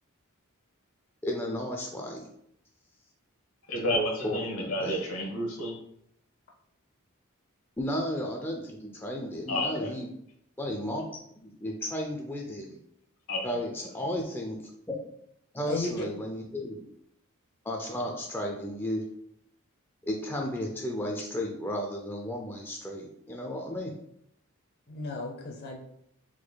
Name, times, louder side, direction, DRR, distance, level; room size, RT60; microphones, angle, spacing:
voice 1, 1.2-2.3 4.2-5.0 7.8-10.1 10.6-11.1 11.4-12.8 13.4-14.6 15.5-16.8 17.6-19.0 20.0-23.9, left 1 dB, 10° left, 0 dB, 0.4 m, -33 dB
voice 2, 3.7-5.8 9.5-9.9 13.3-13.6, left 1 dB, 75° left, 1 dB, 1.1 m, -30 dB
voice 3, 15.7-16.1 24.9-25.8, left 2 dB, 45° left, -1 dB, 0.7 m, -34 dB
4.7 x 4.1 x 2.3 m, 0.73 s
head